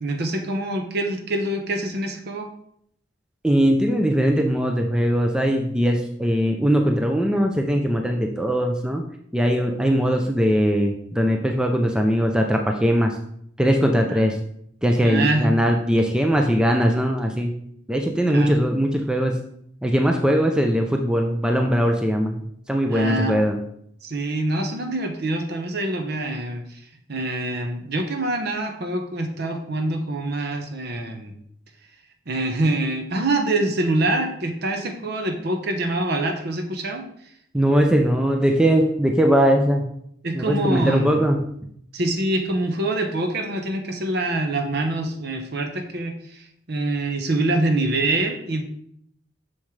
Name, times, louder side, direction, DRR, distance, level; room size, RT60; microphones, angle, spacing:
voice 1, 0.0-2.5 14.1-14.2 15.0-15.5 18.3-18.5 22.9-23.4 24.0-26.8 27.1-31.3 32.3-37.1 40.2-41.2 41.9-48.6, right 2 dB, 50° right, 5 dB, 0.9 m, -25 dB
voice 2, 3.4-9.1 9.3-13.2 13.6-14.4 14.8-17.5 17.9-19.5 19.8-23.6 37.5-39.9 40.3-41.6, equal, 5° right, 3 dB, 0.4 m, -20 dB
7.1 x 6.3 x 3.2 m, 0.70 s
head